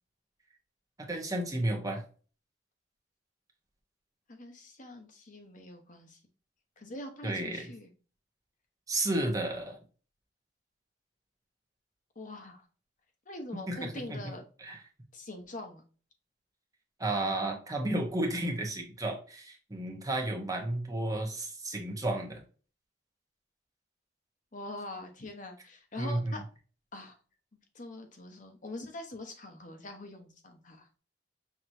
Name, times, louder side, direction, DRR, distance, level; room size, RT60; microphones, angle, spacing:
voice 1, 1.0-2.0 7.2-7.7 8.9-9.8 13.5-14.3 14.6-14.8 17.0-22.4 26.0-26.3, right 1 dB, 20° right, 1.0 m, -32 dB
voice 2, 4.3-6.2 6.8-7.9 12.1-12.6 13.3-14.4 15.1-15.8 24.5-26.5 26.9-27.2 27.7-30.9, left 1 dB, 45° left, 1.0 m, -43 dB
5.9 x 3.1 x 2.6 m
head